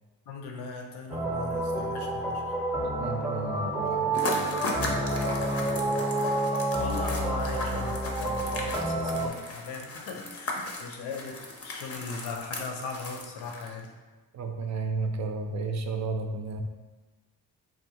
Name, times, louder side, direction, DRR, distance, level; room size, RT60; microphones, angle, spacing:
voice 1, 0.3-2.5 4.2-4.3 6.8-13.9, left 4 dB, 90° left, 2 dB, 0.5 m, -38 dB
sound 1, 1.1-9.3, right 2 dB, 5° right, 0.6 m, -29 dB
voice 2, 3.0-6.0 14.3-16.6, right 3 dB, 45° right, 4 dB, 0.5 m, -34 dB
sound 2, 4.1-13.9, left 2 dB, 40° left, 0.6 m, -37 dB
3.5 x 2.2 x 2.8 m, 1.3 s
cardioid pair, 65°, 38 cm